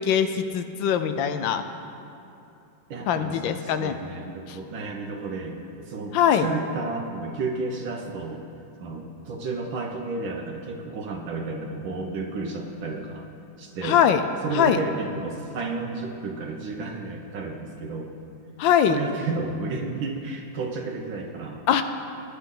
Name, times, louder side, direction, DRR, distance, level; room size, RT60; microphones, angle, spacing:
voice 1, 0.0-1.6 3.1-4.0 4.5-4.6 6.1-6.5 13.8-14.2 14.5-14.8 18.6-19.0 21.7-21.8, left 9 dB, 80° left, 9 dB, 1.3 m, -22 dB
voice 2, 2.9-8.4 8.8-13.3 13.6-14.0 14.4-18.1 18.9-21.6, right 3 dB, 80° right, 0 dB, 1.7 m, -32 dB
21.0 x 9.7 x 3.8 m, 2.8 s
omnidirectional pair, 2.1 m